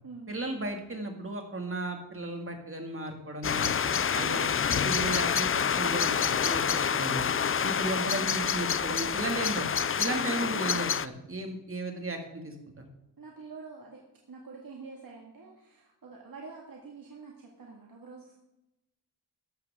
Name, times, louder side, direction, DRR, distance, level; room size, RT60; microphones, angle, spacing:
voice 1, 0.3-3.8 4.1-4.5 4.8-7.3 7.6-12.8, right 2 dB, 30° right, 3 dB, 2.4 m, -35 dB
sound 1, 3.4-11.1, left 7 dB, 30° left, 0.4 m, -27 dB
voice 2, 4.2-4.5 7.4-7.7 10.0-10.3 13.2-14.0 14.3-18.4, right 4 dB, 50° right, -2 dB, 2.1 m, -47 dB
14.0 x 11.5 x 3.7 m, 0.93 s
wide cardioid pair, 110°, 44 cm